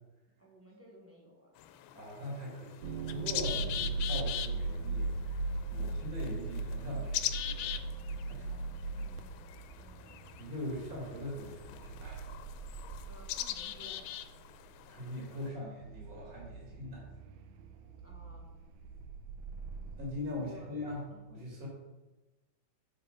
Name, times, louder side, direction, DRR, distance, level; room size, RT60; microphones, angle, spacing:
voice 1, 0.4-1.5 8.9-10.3 13.0-14.1 18.0-18.6 20.3-20.7 21.1-21.2, right 1 dB, 10° left, -2 dB, 1.0 m, -56 dB
sound 1, 1.6-15.5, left 12 dB, 90° left, 1.4 m, -42 dB
voice 2, 1.9-7.9 8.2-8.6 10.4-12.3 14.5-14.6 14.8-17.1 20.0-21.0 21.3-21.7, left 1 dB, 50° right, -3 dB, 2.2 m, -42 dB
sound 2, 2.8-14.6 15.8-21.0, right 3 dB, 80° right, 1.4 m, -39 dB
7.4 x 4.9 x 4.8 m, 1.1 s
omnidirectional pair, 2.2 m